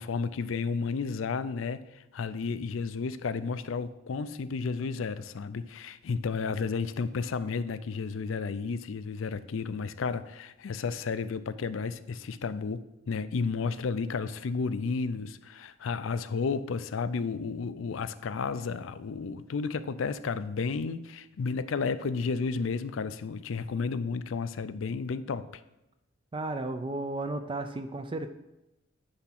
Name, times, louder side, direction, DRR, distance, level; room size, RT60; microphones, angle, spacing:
voice 1, 0.0-25.5, left 5 dB, 70° left, 0.4 m, -32 dB
voice 2, 26.3-28.3, right 2 dB, 25° right, 0.4 m, -34 dB
9.8 x 3.5 x 5.8 m
head